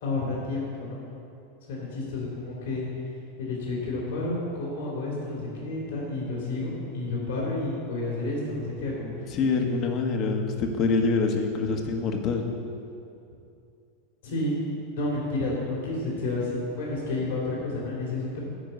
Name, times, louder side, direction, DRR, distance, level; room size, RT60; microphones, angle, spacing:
voice 1, 0.0-1.0 1.7-2.9 3.4-9.3 14.2-14.6 14.9-18.4, left 2 dB, 70° left, -4 dB, 2.8 m, -30 dB
voice 2, 9.0-12.5, left 4 dB, 45° left, 3 dB, 1.3 m, -26 dB
10.0 x 5.1 x 8.1 m, 2.6 s
hypercardioid pair, 90°, 0 cm